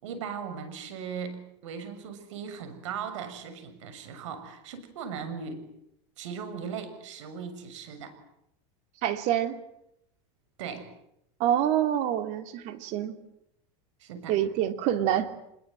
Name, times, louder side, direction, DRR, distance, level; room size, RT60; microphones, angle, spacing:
voice 1, 0.0-5.6 6.2-8.2 10.6-10.9 14.0-14.4, right 6 dB, 80° right, 10 dB, 6.8 m, -38 dB
voice 2, 9.0-9.6 11.4-13.2 14.3-15.3, right 11 dB, 50° right, 9 dB, 2.9 m, -26 dB
26.0 x 22.0 x 9.1 m, 0.79 s
supercardioid pair, 140°, 16 cm